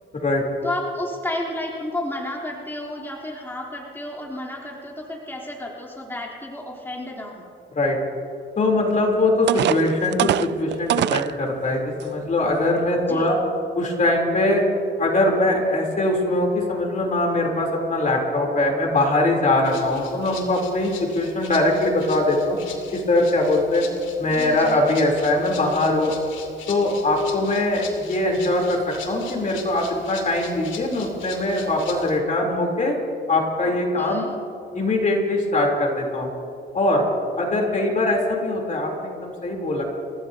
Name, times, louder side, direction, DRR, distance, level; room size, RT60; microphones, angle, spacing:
voice 1, 0.6-7.4 13.1-13.3 24.3-24.8 33.6-34.4, left 1 dB, 10° left, -3 dB, 3.3 m, -32 dB
voice 2, 8.6-13.4 13.7-14.6 15.0-22.6 22.9-23.9 24.2-26.1 26.7-33.0 33.3-34.3 34.7-36.3 36.7-37.0 37.4-39.8, left 2 dB, 40° left, -1 dB, 3.3 m, -22 dB
sound 1, 8.9-9.0 9.5-11.3 12.0-12.1 12.6-12.8, right 12 dB, 65° right, 0.4 m, -23 dB
Rattle (instrument), 19.6-32.2, left 6 dB, 75° left, 2.6 m, -41 dB
30.0 x 15.5 x 2.8 m, 2.6 s
cardioid pair, 90°, 20 cm